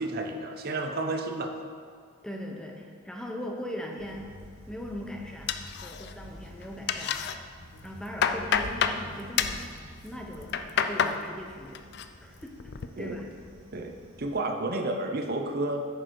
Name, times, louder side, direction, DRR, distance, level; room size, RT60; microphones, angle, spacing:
voice 1, 0.0-1.5 13.0-13.2 13.7-15.8, right 2 dB, 45° right, 5 dB, 0.6 m, -31 dB
voice 2, 2.2-4.3 4.7-7.2 7.8-11.9 12.2-12.7 13.0-13.3, equal, 5° left, 0 dB, 0.7 m, -40 dB
sound 1, 4.0-14.3, equal, 65° right, 1.5 m, -50 dB
sound 2, 5.5-6.3 6.6-7.3 7.8-9.0 9.4-9.6 10.3-11.2 11.5-12.0 12.4-12.9, left 7 dB, 50° left, 0.4 m, -28 dB
9.3 x 6.5 x 4.6 m, 2.1 s
head